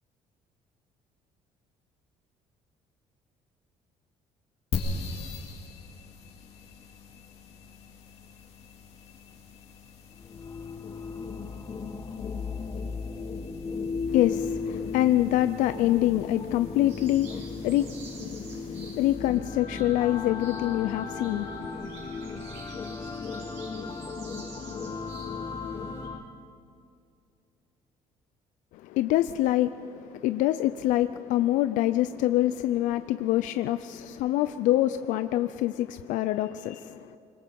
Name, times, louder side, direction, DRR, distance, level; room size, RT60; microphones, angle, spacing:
sound 1, 4.7-19.4, left 3 dB, 50° left, 2.6 m, -42 dB
sound 2, 10.2-26.2, left 4 dB, 30° left, 1.5 m, -36 dB
voice 1, 14.1-21.8 28.7-37.2, left 14 dB, 85° left, 11 dB, 0.5 m, -26 dB
sound 3, 16.9-26.1, right 3 dB, 60° right, 6.4 m, -50 dB
25.0 x 21.5 x 5.3 m, 2.4 s
cardioid pair, 120°, 13 cm